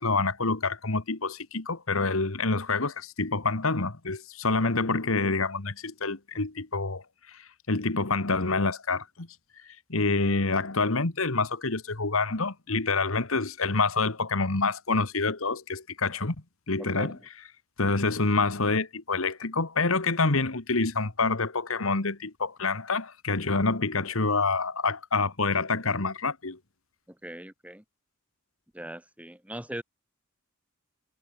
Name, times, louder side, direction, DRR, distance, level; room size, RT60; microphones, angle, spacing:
voice 1, 0.0-9.3 9.9-16.3 16.7-17.2 17.8-26.6, left 3 dB, 70° left, 1.8 m, -27 dB
voice 2, 16.8-17.2 27.1-27.8 28.7-29.8, right 1 dB, 5° right, 3.6 m, -40 dB
head